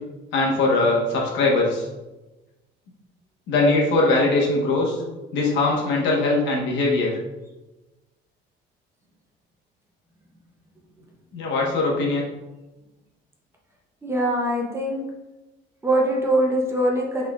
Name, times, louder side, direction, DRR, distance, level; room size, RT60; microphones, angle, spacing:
voice 1, 0.3-1.8 3.5-5.0 5.3-7.1 11.3-12.3, left 2 dB, 70° left, -2 dB, 1.3 m, -21 dB
voice 2, 14.0-15.0 15.8-17.3, right 1 dB, 15° right, -2 dB, 0.6 m, -22 dB
5.5 x 3.8 x 2.4 m, 1.1 s
cardioid pair, 160°, 20 cm